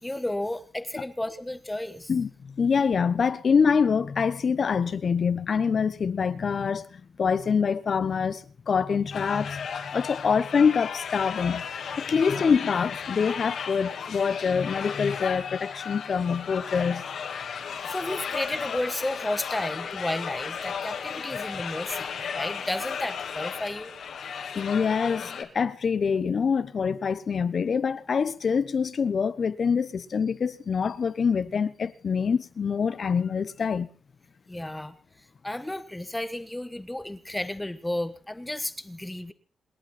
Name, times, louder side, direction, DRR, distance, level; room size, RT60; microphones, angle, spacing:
voice 1, 0.0-2.1 17.8-22.1 22.3-23.9 34.5-35.0 35.4-39.3, left 1 dB, 10° left, 1.4 m, -32 dB
voice 2, 2.6-9.7 9.9-11.7 11.9-17.1 24.5-33.9, left 6 dB, 45° left, 1.0 m, -25 dB
sound 1, 9.1-25.4, left 7 dB, 75° left, 3.0 m, -35 dB
28.0 x 11.5 x 4.3 m
wide cardioid pair, 150°, 0 cm